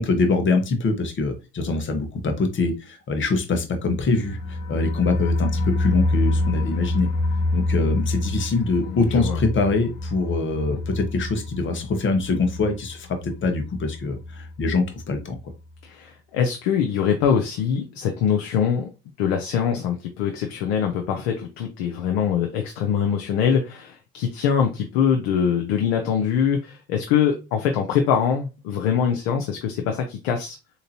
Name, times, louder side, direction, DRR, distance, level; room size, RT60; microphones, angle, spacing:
voice 1, 0.0-7.1 7.5-15.4, left 3 dB, 40° left, 1.0 m, -24 dB
sound 1, 4.0-14.7 15.0-15.1 15.4-15.5, left 2 dB, 65° left, 0.9 m, -27 dB
voice 2, 8.8-9.4 10.7-10.8 15.8-18.9 19.2-30.6, left 7 dB, 85° left, 0.6 m, -23 dB
3.6 x 2.9 x 2.7 m
supercardioid pair, 80°, 29 cm